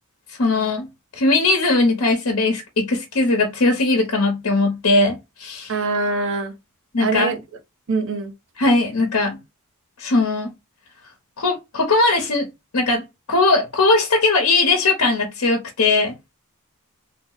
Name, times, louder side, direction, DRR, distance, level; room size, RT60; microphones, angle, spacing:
voice 1, 0.4-0.9 1.2-5.7 6.9-7.3 8.6-9.4 10.0-10.5 11.4-12.5 12.7-13.0 13.3-16.1, left 2 dB, 75° left, 0.9 m, -19 dB
voice 2, 5.7-6.5 7.0-7.4 7.9-8.3, right 3 dB, 65° right, 0.9 m, -23 dB
3.4 x 2.1 x 3.8 m
head